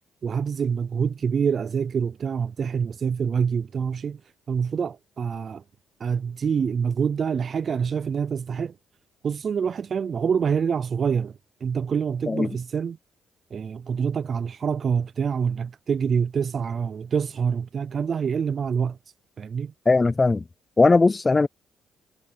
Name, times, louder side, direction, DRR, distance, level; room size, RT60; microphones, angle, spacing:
voice 1, 0.2-4.2 4.5-5.6 6.0-8.7 9.2-13.0 13.5-19.0 19.4-19.7, right 6 dB, 50° right, 0.4 m, -26 dB
voice 2, 19.9-20.4 20.8-21.5, left 3 dB, 25° left, 0.4 m, -18 dB
cardioid pair, 90°, 0 cm